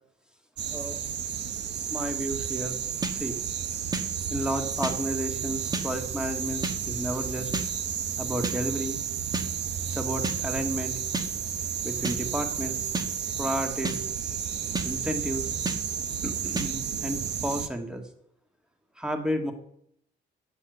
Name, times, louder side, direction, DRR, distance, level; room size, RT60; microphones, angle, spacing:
sound 1, 0.6-17.7, right 8 dB, 60° right, 0.9 m, -32 dB
voice 1, 1.9-2.8 3.2-3.4 4.3-7.5 8.2-9.0 9.9-10.9 11.8-12.9 13.4-14.0 14.8-15.5 16.2-18.1 19.0-19.5, right 1 dB, 5° right, 5 dB, 1.7 m, -32 dB
sound 2, 3.0-3.1 3.9-4.0 4.8-4.9 5.7-5.9 6.6-6.8 7.5-7.7 8.4-8.6 9.3-9.5 10.2-10.4 11.1-11.3 12.0-12.2 12.9-13.1 13.8-14.0 14.7-14.9 15.7-15.8 16.6-16.7, right 2 dB, 20° right, 1.2 m, -29 dB
8.2 x 7.1 x 7.9 m, 0.71 s
cardioid pair, 90°, 20 cm